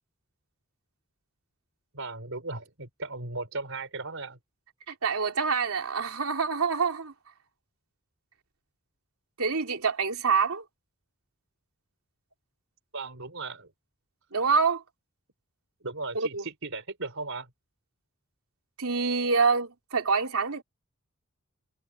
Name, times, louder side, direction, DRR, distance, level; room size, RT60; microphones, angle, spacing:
voice 1, 1.9-4.4 12.9-13.7 15.8-17.5, right 3 dB, 65° right, 5.0 m, -36 dB
voice 2, 4.9-7.1 9.4-10.6 14.3-14.8 16.1-16.4 18.8-20.6, right 5 dB, 85° right, 2.9 m, -26 dB
head